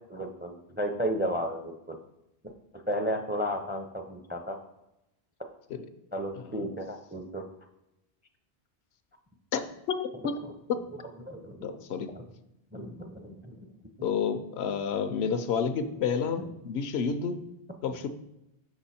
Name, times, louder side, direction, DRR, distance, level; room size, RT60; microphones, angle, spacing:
voice 1, 0.1-2.0 2.9-4.6 6.1-7.4 11.2-11.6 12.1-12.2 12.7-13.6 14.0-14.1 16.4-16.5, equal, 15° right, 4 dB, 0.4 m, -33 dB
voice 2, 9.9-10.3 10.7-10.8 11.6-12.1 14.0-17.4 17.8-18.1, left 6 dB, 75° left, 9 dB, 0.8 m, -30 dB
6.1 x 6.1 x 4.2 m, 0.88 s
omnidirectional pair, 1.1 m